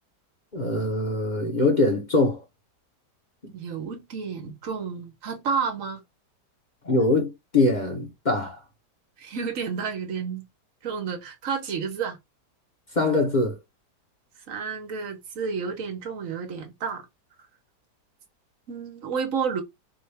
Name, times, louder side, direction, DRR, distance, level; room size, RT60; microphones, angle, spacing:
voice 1, 0.5-2.4 3.4-3.5 6.8-8.6 12.9-13.6, left 2 dB, 30° left, 1.0 m, -23 dB
voice 2, 3.5-6.0 9.2-10.4 10.8-12.2 14.5-17.1 18.7-19.6, right 6 dB, 55° right, 1.4 m, -30 dB
4.7 x 2.6 x 3.3 m
omnidirectional pair, 1.8 m